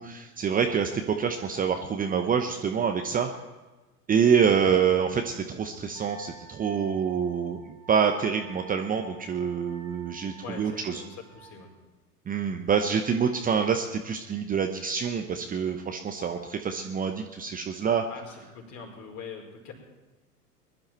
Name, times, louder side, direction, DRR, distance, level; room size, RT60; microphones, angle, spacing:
voice 1, 0.0-3.3 4.1-7.6 7.9-11.0 12.3-18.0, right 7 dB, 20° right, 5 dB, 0.9 m, -26 dB
Wind instrument woodwind instrument, 5.9-11.6, right 4 dB, 90° right, 4.5 m, -52 dB
voice 2, 10.4-11.7 18.1-19.7, left 5 dB, 35° left, 0 dB, 4.8 m, -43 dB
21.0 x 11.5 x 4.5 m, 1.2 s
figure-of-eight pair, 90°, 47 cm